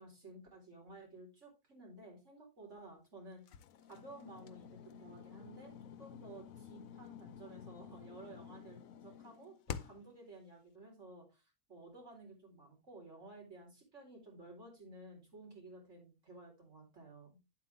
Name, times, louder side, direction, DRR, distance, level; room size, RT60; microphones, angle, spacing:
voice 1, 0.0-3.6 3.9-5.7 6.0-17.3, right 2 dB, 55° right, 0 dB, 4.5 m, -54 dB
sound 1, 3.5-10.1, left 8 dB, 75° left, 1.1 m, -50 dB
9.4 x 7.9 x 3.4 m, 0.26 s
omnidirectional pair, 1.5 m